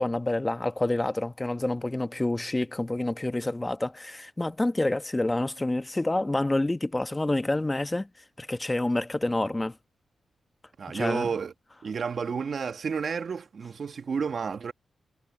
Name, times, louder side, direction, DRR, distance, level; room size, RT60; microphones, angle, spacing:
voice 1, 0.0-8.1 8.4-9.7 10.9-11.3, left 2 dB, 15° left, 1.1 m, -28 dB
voice 2, 10.8-11.5 11.8-14.7, right 6 dB, 60° right, 1.6 m, -31 dB
cardioid pair, 95°, 0 cm